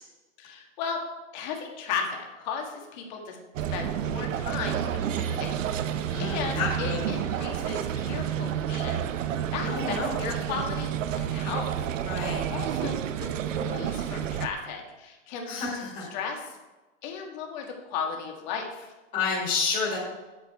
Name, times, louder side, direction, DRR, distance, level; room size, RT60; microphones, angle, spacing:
voice 1, 0.4-1.0 1.3-3.4 3.7-11.9 12.2-16.5 17.0-18.9, left 6 dB, 35° left, 1 dB, 1.6 m, -36 dB
sound 1, 3.5-14.5, right 9 dB, 75° right, 0.7 m, -30 dB
voice 2, 6.1-7.0 9.7-10.2 12.1-12.4 15.5-16.1 19.1-20.0, left 4 dB, 20° left, -5 dB, 2.3 m, -30 dB
8.4 x 8.4 x 4.5 m, 1.2 s
supercardioid pair, 170°, 39 cm